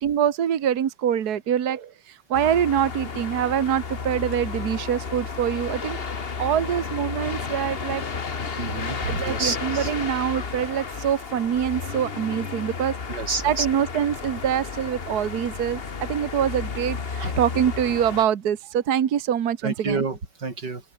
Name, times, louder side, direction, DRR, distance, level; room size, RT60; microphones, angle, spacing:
voice 1, 0.0-6.0 6.4-8.0 9.1-12.9 13.4-20.0, right 9 dB, 60° right, 1.0 m, -25 dB
sound 1, 2.3-18.3, left 5 dB, 45° left, 0.7 m, -32 dB
voice 2, 8.6-9.9 13.1-13.7 17.2-17.3 19.6-20.8, right 4 dB, 35° right, 4.4 m, -29 dB
open air
omnidirectional pair, 3.3 m